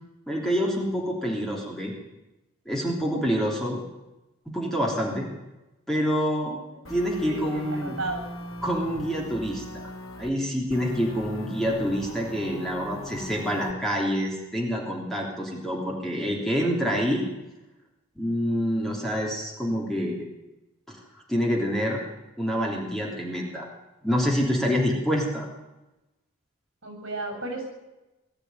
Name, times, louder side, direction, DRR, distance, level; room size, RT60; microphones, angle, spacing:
voice 1, 0.3-1.9 2.6-3.8 4.5-5.3 5.9-6.5 6.9-8.0 8.6-9.9 10.2-17.3 18.2-20.3 20.9-21.0 21.3-22.0 22.4-23.7 24.0-25.5, equal, ahead, -2 dB, 3.2 m, -27 dB
voice 2, 6.4-8.2 26.8-27.6, right 2 dB, 70° right, 3 dB, 7.9 m, -35 dB
sound 1, 6.8-10.3 10.7-13.7, left 1 dB, 85° left, 3.7 m, -39 dB
20.5 x 13.0 x 9.6 m, 1.0 s
head